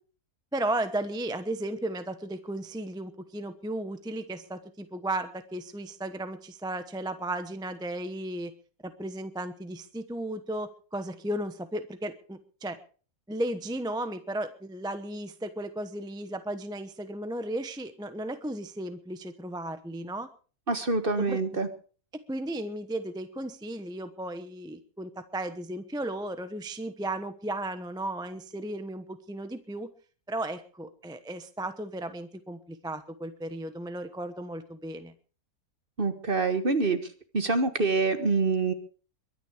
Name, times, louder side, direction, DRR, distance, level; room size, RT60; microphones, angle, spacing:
voice 1, 0.5-8.5 8.8-12.8 13.3-20.3 21.2-21.4 22.3-29.9 30.3-35.1, right 1 dB, 5° right, 10 dB, 0.8 m, -35 dB
voice 2, 20.7-21.7 36.0-37.0 37.3-38.7, right 3 dB, 40° right, 9 dB, 1.5 m, -26 dB
22.5 x 9.8 x 5.0 m, 0.40 s
omnidirectional pair, 1.6 m